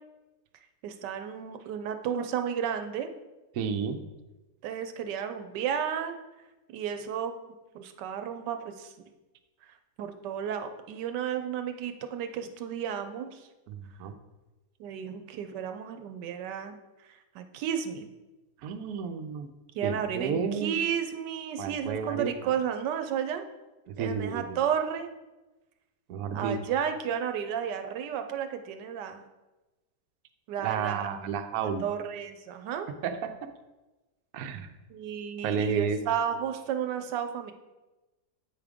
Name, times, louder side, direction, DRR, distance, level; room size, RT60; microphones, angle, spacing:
voice 1, 0.8-3.1 4.6-6.1 6.7-7.3 7.7-8.9 10.0-13.4 14.8-18.1 19.7-23.4 24.0-25.1 26.3-29.3 30.5-31.1 31.6-32.9 34.9-37.5, right 8 dB, 85° right, 7 dB, 1.2 m, -32 dB
voice 2, 3.5-4.0 13.7-14.1 18.6-19.5 19.8-20.8 21.6-22.3 23.9-24.6 26.1-26.6 30.6-31.8 33.0-33.3 34.3-34.7 35.4-36.0, right 6 dB, 70° right, 6 dB, 1.0 m, -31 dB
7.9 x 3.5 x 5.0 m, 1.1 s
omnidirectional pair, 1.8 m